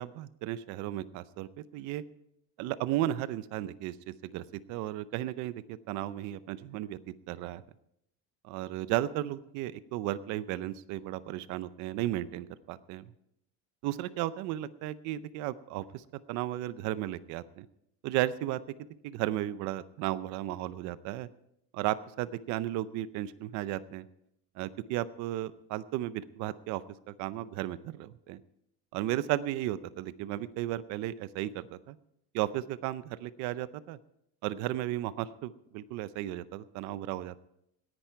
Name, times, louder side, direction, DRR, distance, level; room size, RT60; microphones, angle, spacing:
voice 1, 0.0-2.0 2.6-4.0 4.2-7.6 8.4-13.1 13.8-17.7 18.0-18.6 19.0-21.3 21.7-24.1 24.6-28.4 28.9-32.0 32.3-34.0 34.4-37.4, right 14 dB, 50° right, 16 dB, 0.6 m, -34 dB
18.0 x 10.5 x 4.6 m, 0.78 s
cardioid pair, 180°, 38 cm